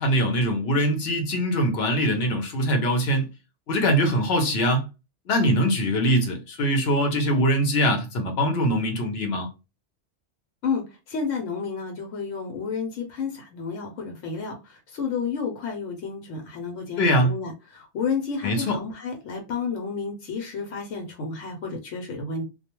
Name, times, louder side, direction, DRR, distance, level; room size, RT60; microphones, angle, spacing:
voice 1, 0.0-3.3 3.7-4.8 5.3-9.5 17.0-17.3 18.4-18.8, equal, 60° left, 0.8 m, -22 dB
voice 2, 10.6-22.4, left 5 dB, 85° left, 1.0 m, -31 dB
2.3 x 2.2 x 2.9 m
omnidirectional pair, 1.3 m